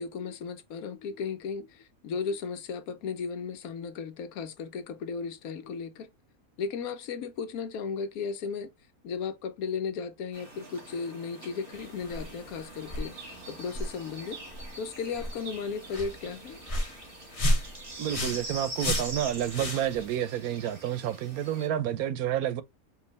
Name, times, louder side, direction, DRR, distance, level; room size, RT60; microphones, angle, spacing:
voice 1, 0.0-6.1 6.6-8.7 9.0-14.4 14.8-16.6, left 5 dB, 85° left, 1.2 m, -35 dB
sound 1, 10.3-21.7, right 2 dB, 55° right, 2.3 m, -44 dB
sound 2, 11.7-20.2, equal, 30° left, 0.7 m, -34 dB
voice 2, 18.0-22.6, right 11 dB, 90° right, 1.1 m, -29 dB
4.6 x 2.7 x 3.2 m
omnidirectional pair, 1.5 m